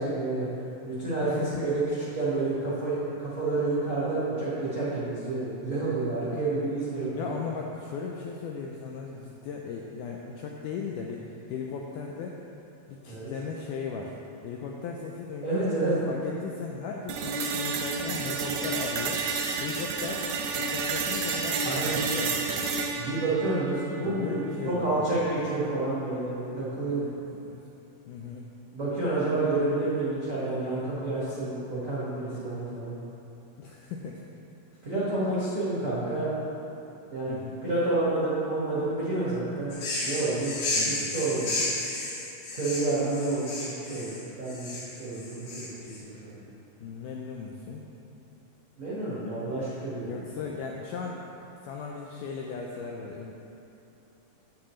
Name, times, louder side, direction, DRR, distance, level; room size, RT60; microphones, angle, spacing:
voice 1, 0.0-1.3 1.6-1.8 2.1-7.3 13.1-13.3 15.4-15.9 21.6-22.0 22.9-27.1 28.7-33.0 34.8-36.3 37.1-39.7 40.0-41.5 42.5-46.4 48.8-50.2, right 2 dB, 70° right, -10 dB, 0.7 m, -29 dB
voice 2, 1.2-1.7 7.1-12.4 12.9-22.7 24.0-25.2 27.3-27.6 28.1-28.5 33.6-34.2 37.3-37.6 40.2-40.3 40.7-41.1 46.8-47.8 50.0-51.2 51.6-53.3, left 5 dB, 90° left, -1 dB, 1.8 m, -37 dB
sound 1, 17.1-25.1, right 4 dB, 90° right, 2.5 m, -31 dB
sound 2, 39.7-46.0, left 2 dB, 65° left, 3.1 m, -32 dB
8.7 x 8.3 x 3.1 m, 2.9 s
omnidirectional pair, 4.3 m